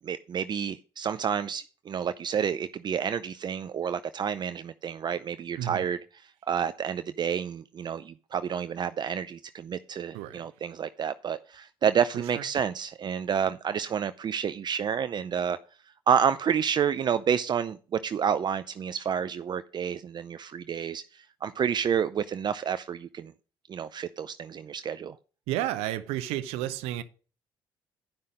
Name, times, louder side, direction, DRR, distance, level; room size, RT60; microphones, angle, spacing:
voice 1, 0.0-6.0 6.5-15.6 16.1-23.3 23.7-25.2, right 7 dB, 45° right, 0.5 m, -29 dB
voice 2, 5.6-5.9 10.1-10.5 12.3-12.4 25.5-27.0, right 13 dB, 80° right, 0.7 m, -31 dB
10.5 x 5.6 x 5.1 m
supercardioid pair, 60°, 10 cm